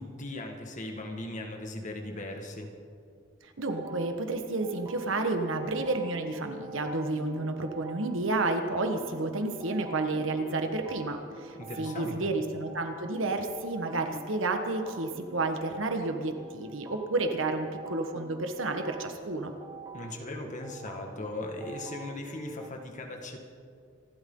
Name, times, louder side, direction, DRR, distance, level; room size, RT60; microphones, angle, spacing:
voice 1, 0.0-2.7 11.6-12.2 19.9-23.4, left 1 dB, 40° left, 2 dB, 1.9 m, -38 dB
voice 2, 3.4-19.5, right 2 dB, 85° right, 5 dB, 1.5 m, -31 dB
sound 1, 3.7-22.7, right 2 dB, 15° right, 0.8 m, -46 dB
26.0 x 12.5 x 3.9 m, 2.4 s
head